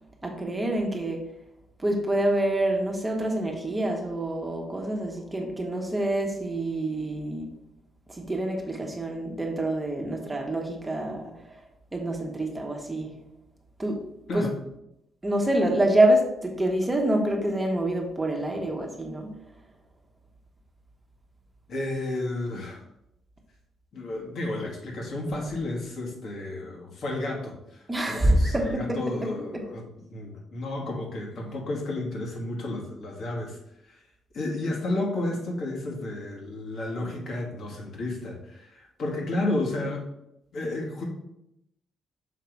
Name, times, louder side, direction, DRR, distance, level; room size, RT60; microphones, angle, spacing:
voice 1, 0.2-1.2 1.8-7.5 8.1-11.4 11.9-13.1 13.8-14.0 14.3-14.5 15.2-19.3 27.9-29.6, right 1 dB, 15° right, 1 dB, 1.3 m, -26 dB
voice 2, 21.7-22.8 23.9-33.6 33.8-34.0 34.3-40.0 40.5-41.0, left 2 dB, 65° left, -1 dB, 1.8 m, -32 dB
6.0 x 3.8 x 4.7 m, 0.83 s
cardioid pair, 90°, 0 cm